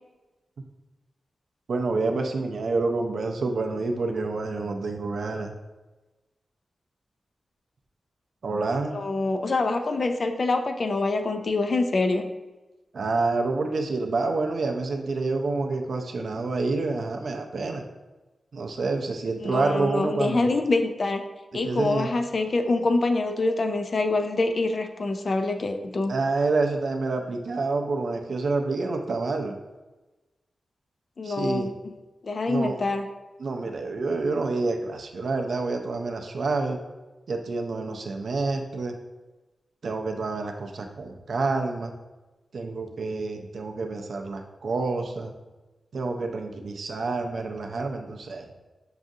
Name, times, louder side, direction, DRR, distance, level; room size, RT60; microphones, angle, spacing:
voice 1, 1.7-5.5 8.4-9.0 12.9-17.8 18.5-20.5 21.6-22.1 26.1-29.6 31.2-31.7 32.5-32.8 33.4-36.8 37.3-38.9 39.8-41.9 42.5-45.3 45.9-48.5, right 3 dB, 60° right, 4 dB, 0.4 m, -28 dB
voice 2, 8.9-12.2 19.4-21.2 21.5-26.1 31.2-31.7 32.2-33.0, left 3 dB, 40° left, 6 dB, 0.3 m, -25 dB
6.1 x 2.4 x 2.6 m, 1.1 s
wide cardioid pair, 180°, 0 cm